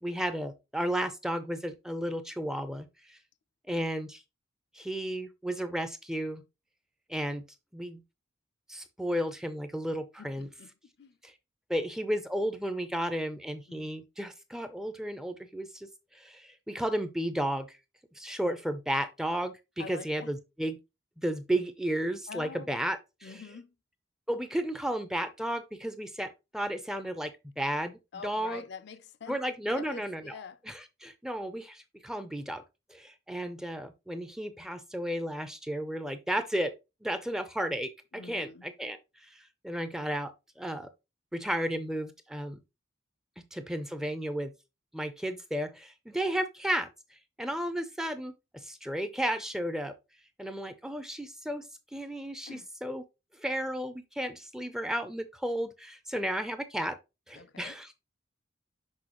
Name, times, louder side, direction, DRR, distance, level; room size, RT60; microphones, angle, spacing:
voice 1, 0.0-3.2 3.7-4.2 4.7-6.4 7.1-7.4 7.7-8.0 8.7-10.5 11.2-11.3 11.7-17.8 18.1-20.8 21.2-23.4 24.3-28.6 29.3-30.4 30.7-32.6 32.9-36.7 37.0-40.9 41.3-42.6 43.5-44.5 44.9-49.9 50.4-53.0 53.4-57.0 57.3-57.9, right 1 dB, ahead, 0.5 m, -33 dB
voice 2, 10.2-10.7 11.0-11.2 13.7-13.9 19.8-20.3 22.3-22.7 23.2-23.7 28.1-30.6 38.1-38.7 52.5-52.7 57.3-57.8, left 5 dB, 55° left, 0.5 m, -46 dB
6.2 x 5.1 x 2.9 m
head